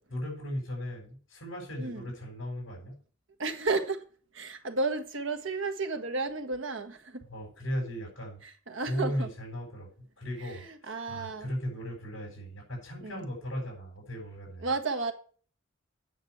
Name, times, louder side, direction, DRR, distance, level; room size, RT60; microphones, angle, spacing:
voice 1, 0.1-3.0 7.3-8.4 8.8-9.9 10.2-14.7, equal, 65° left, 6.3 m, -37 dB
voice 2, 1.8-2.1 3.4-4.0 4.3-7.2 8.4-9.3 10.4-11.5 13.0-13.2 14.6-15.1, right 3 dB, 65° right, 1.5 m, -33 dB
9.2 x 6.1 x 7.9 m
head